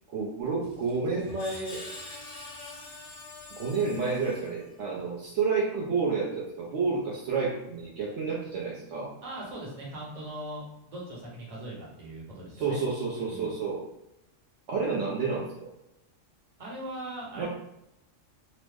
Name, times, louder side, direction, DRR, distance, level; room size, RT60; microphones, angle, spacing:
voice 1, 0.1-1.8 3.5-9.1 12.6-13.8 14.7-15.7 17.4-17.5, right 4 dB, 70° right, -4 dB, 0.9 m, -30 dB
Screech, 0.6-4.9, left 2 dB, 70° left, 1.0 m, -45 dB
voice 2, 9.2-12.8 13.2-13.5 16.6-17.5, right 1 dB, 35° right, -5 dB, 1.0 m, -40 dB
3.0 x 2.0 x 3.3 m, 0.86 s
omnidirectional pair, 1.3 m